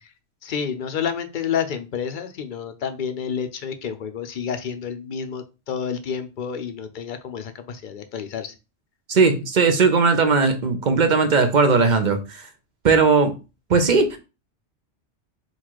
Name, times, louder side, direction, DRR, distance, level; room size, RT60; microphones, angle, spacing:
voice 1, 0.4-8.5, left 7 dB, 50° left, 0.7 m, -29 dB
voice 2, 9.1-12.4 12.8-13.3 13.7-14.2, right 4 dB, 50° right, 0.7 m, -18 dB
4.0 x 2.4 x 4.5 m
omnidirectional pair, 1.2 m